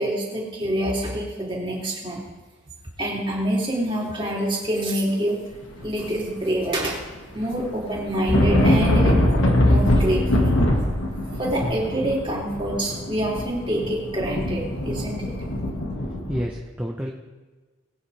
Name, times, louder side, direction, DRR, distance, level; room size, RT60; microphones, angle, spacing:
voice 1, 0.0-2.3 3.0-5.4 5.8-7.0 7.3-9.2 9.6-10.6 11.4-15.3, right 1 dB, 25° right, -4 dB, 3.0 m, -26 dB
sound 1, 5.6-6.6 6.9-16.4, left 1 dB, 75° left, 1.9 m, -22 dB
voice 2, 16.0-17.1, equal, 5° right, 0 dB, 0.8 m, -30 dB
21.5 x 9.1 x 3.4 m, 1.3 s
head